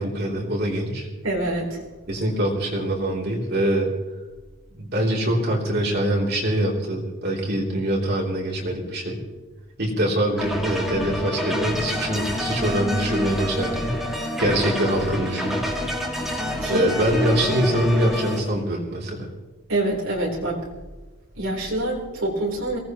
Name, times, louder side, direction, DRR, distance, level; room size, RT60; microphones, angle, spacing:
voice 1, 0.0-1.1 2.1-3.9 4.8-9.2 9.8-13.9 14.4-15.6 16.7-19.3, right 1 dB, 50° right, -2 dB, 3.4 m, -24 dB
voice 2, 1.2-1.8 16.6-16.9 19.7-20.6 21.3-22.8, right 1 dB, 75° right, -4 dB, 4.0 m, -25 dB
sound 1, 10.4-18.4, left 1 dB, ahead, 2.2 m, -27 dB
23.5 x 18.0 x 3.1 m, 1.2 s
head